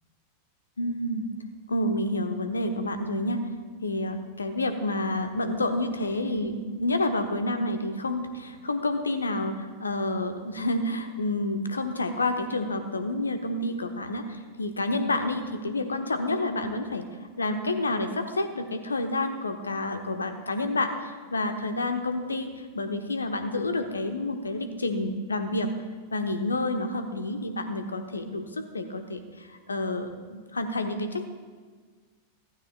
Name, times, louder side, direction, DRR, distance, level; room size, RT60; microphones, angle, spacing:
voice 1, 0.8-1.3 1.7-3.5 3.8-17.1 17.4-25.7 26.1-31.2, left 2 dB, 75° left, 7 dB, 1.0 m, -29 dB
15.5 x 15.0 x 2.4 m, 1.5 s
figure-of-eight pair, 90°, 0 cm